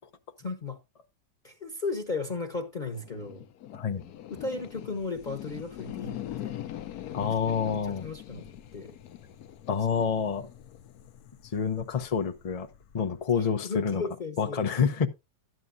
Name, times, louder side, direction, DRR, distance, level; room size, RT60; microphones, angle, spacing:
voice 1, 0.4-0.8 1.4-3.4 4.3-6.1 6.4-6.5 7.2-8.5 8.7-8.9 13.6-14.6, left 3 dB, 35° left, 1.0 m, -35 dB
sound 1, 2.8-13.3, left 12 dB, 75° left, 1.2 m, -43 dB
voice 2, 7.1-8.1 9.7-10.5 11.4-12.7 12.9-14.0 14.4-15.1, left 6 dB, 50° left, 0.4 m, -28 dB
12.0 x 9.1 x 2.6 m
omnidirectional pair, 1.7 m